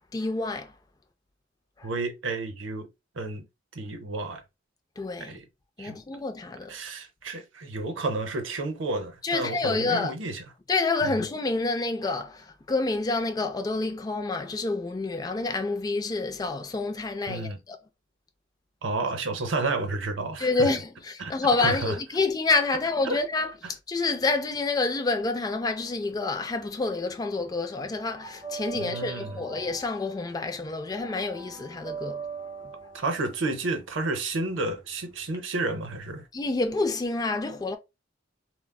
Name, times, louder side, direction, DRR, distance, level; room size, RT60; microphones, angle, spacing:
voice 1, 0.1-0.7 1.8-1.9 5.0-5.4 5.8-6.7 9.2-10.1 10.7-17.8 20.4-32.2 36.3-37.8, left 3 dB, 20° left, 0.3 m, -28 dB
voice 2, 1.8-2.9 3.1-3.4 3.7-4.4 5.2-5.4 5.8-6.0 6.7-10.4 11.0-11.2 17.3-17.6 18.8-20.7 21.2-21.3 21.6-22.0 23.0-23.2 23.6-23.7 28.7-29.4 32.9-36.3, right 2 dB, 70° right, 0.7 m, -31 dB
sound 1, 26.1-27.2 27.4-35.4, right 5 dB, 20° right, 0.8 m, -41 dB
3.6 x 2.1 x 2.2 m
head